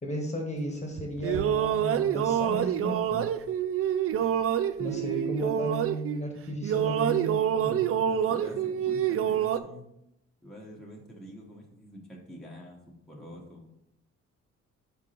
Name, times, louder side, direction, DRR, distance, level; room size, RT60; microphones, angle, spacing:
voice 1, 0.0-3.3 4.8-7.8, equal, 20° left, 2 dB, 1.4 m, -34 dB
sound 1, 1.0-6.3 6.6-9.6, right 9 dB, 50° right, 0.4 m, -27 dB
voice 2, 8.1-9.8 10.4-13.7, equal, ahead, -3 dB, 1.3 m, -46 dB
5.3 x 4.8 x 4.2 m, 0.81 s
cardioid pair, 90°, 30 cm